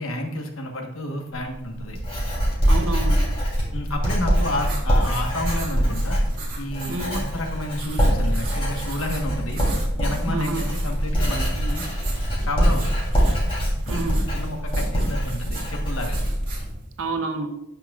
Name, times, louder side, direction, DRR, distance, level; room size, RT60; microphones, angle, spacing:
voice 1, 0.0-2.0 3.7-6.2 6.6-9.6 10.0-11.8 12.4-12.9 14.3-16.2, left 1 dB, 70° left, 3 dB, 1.3 m, -30 dB
Writing, 1.3-16.7, equal, 30° left, 3.1 m, -23 dB
voice 2, 2.7-3.2 6.9-7.2 10.3-10.6 13.9-14.3 17.0-17.6, right 3 dB, 65° right, 7 dB, 0.8 m, -28 dB
sound 1, 4.6-17.1, right 3 dB, 45° right, 2.4 m, -40 dB
13.0 x 5.9 x 2.4 m, 0.88 s
head